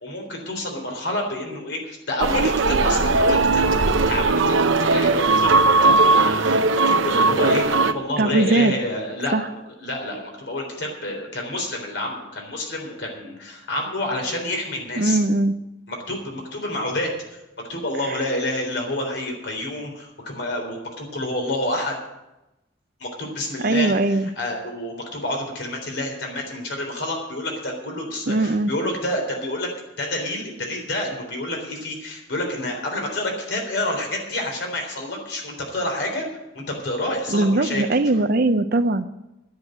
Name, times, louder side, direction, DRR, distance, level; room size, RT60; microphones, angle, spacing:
voice 1, 0.0-15.2 15.9-22.0 23.0-29.7 30.0-36.3 36.5-37.8, left 1 dB, 65° left, 1 dB, 3.7 m, -29 dB
sound 1, 2.2-7.9, right 3 dB, 85° right, 0.8 m, -18 dB
voice 2, 8.2-8.7 9.3-9.4 15.0-15.5 23.6-24.3 28.3-28.7 37.3-39.0, right 2 dB, 50° right, 11 dB, 0.7 m, -20 dB
10.5 x 8.0 x 9.7 m, 0.94 s
head